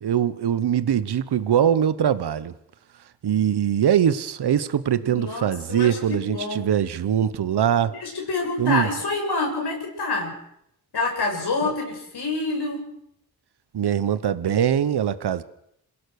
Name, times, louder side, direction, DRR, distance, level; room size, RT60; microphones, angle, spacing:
voice 1, 0.0-2.5 3.2-7.9 8.6-8.9 13.7-15.4, right 9 dB, 75° right, 14 dB, 1.1 m, -22 dB
voice 2, 5.0-6.7 7.9-10.3 10.9-12.8, left 3 dB, 75° left, 1 dB, 6.8 m, -27 dB
27.0 x 17.0 x 6.6 m, 0.76 s
cardioid pair, 70°, 39 cm